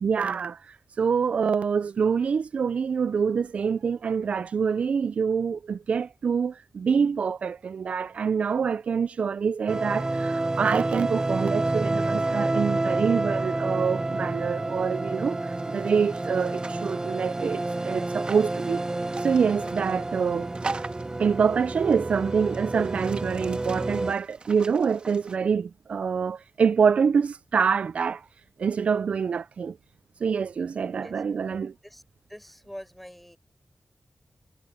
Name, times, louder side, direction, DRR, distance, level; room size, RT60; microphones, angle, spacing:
voice 1, 0.0-18.8 19.2-20.5 21.2-28.2 28.6-29.8 30.2-31.7, right 6 dB, 80° right, 0.3 m, -26 dB
sound 1, 9.7-24.1, right 2 dB, 30° right, 0.8 m, -29 dB
sound 2, 15.5-17.0 18.3-18.5 19.1-20.0 20.5-21.2 21.9-22.0 22.4-25.4, right 3 dB, 50° right, 1.8 m, -40 dB
voice 2, 32.3-33.4, equal, 5° left, 6.3 m, -44 dB
cardioid pair, 55°, 2 cm